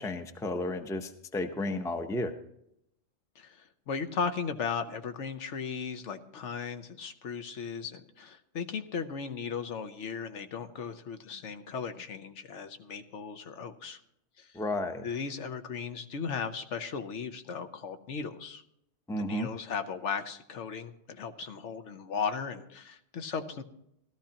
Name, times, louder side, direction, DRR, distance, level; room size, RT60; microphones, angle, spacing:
voice 1, 0.0-2.3 14.5-15.1 19.1-19.5, left 1 dB, 5° left, 7 dB, 0.5 m, -32 dB
voice 2, 3.4-14.0 14.4-14.5 15.0-18.6 19.2-23.6, left 6 dB, 75° left, 8 dB, 1.2 m, -36 dB
16.5 x 13.0 x 2.9 m, 0.77 s
omnidirectional pair, 1.2 m